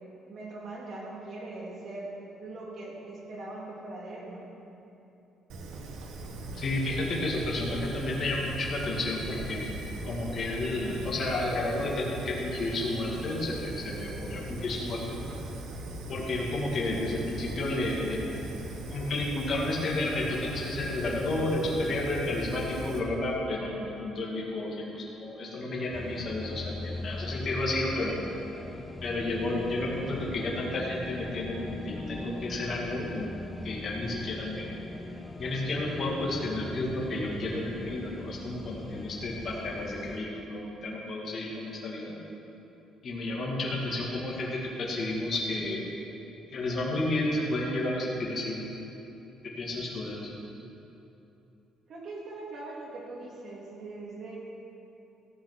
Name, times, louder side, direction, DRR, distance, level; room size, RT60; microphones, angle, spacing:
voice 1, 0.3-4.5 51.9-54.4, right 2 dB, 40° right, -3 dB, 2.5 m, -41 dB
Fire, 5.5-23.0, right 1 dB, 75° right, 1.3 m, -39 dB
voice 2, 6.5-15.2 16.1-18.4 18.9-28.2 29.0-33.3 33.6-34.7 35.4-42.1 43.0-45.9 46.5-48.6 49.6-50.3, left 2 dB, 35° left, -4 dB, 2.1 m, -31 dB
sound 1, 25.9-40.2, left 2 dB, 15° left, 0.5 m, -41 dB
14.5 x 8.1 x 6.1 m, 2.9 s
cardioid pair, 170°, 0 cm